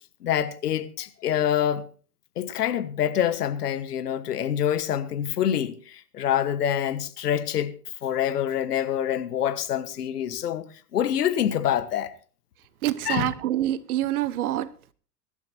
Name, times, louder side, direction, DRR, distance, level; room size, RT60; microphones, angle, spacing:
voice 1, 0.2-1.8 2.4-7.7 8.0-12.1 13.0-13.3, left 10 dB, 75° left, 1.5 m, -26 dB
voice 2, 12.8-14.7, right 13 dB, 65° right, 1.2 m, -26 dB
23.5 x 11.5 x 2.8 m
figure-of-eight pair, 90°, 47 cm